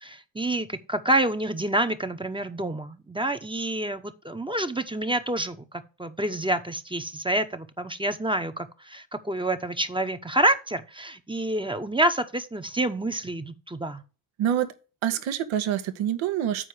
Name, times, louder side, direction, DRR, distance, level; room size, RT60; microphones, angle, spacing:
voice 1, 0.0-14.0, right 1 dB, 10° right, 0.9 m, -28 dB
voice 2, 15.0-16.7, right 10 dB, 65° right, 1.1 m, -26 dB
7.7 x 4.6 x 6.2 m
hypercardioid pair, 50°, 50 cm